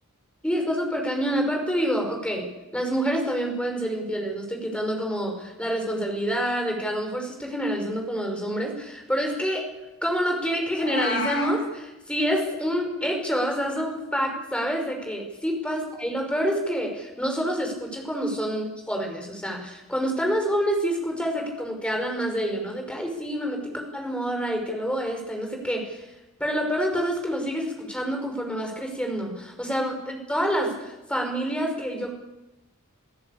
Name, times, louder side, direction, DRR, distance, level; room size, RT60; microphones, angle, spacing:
voice 1, 0.4-2.5 2.7-9.7 10.0-26.0 26.4-32.1, equal, 5° left, 2 dB, 5.5 m, -27 dB
Meow, 10.7-11.6, left 4 dB, 55° left, 6.6 m, -29 dB
28.5 x 16.5 x 8.6 m, 1.0 s
head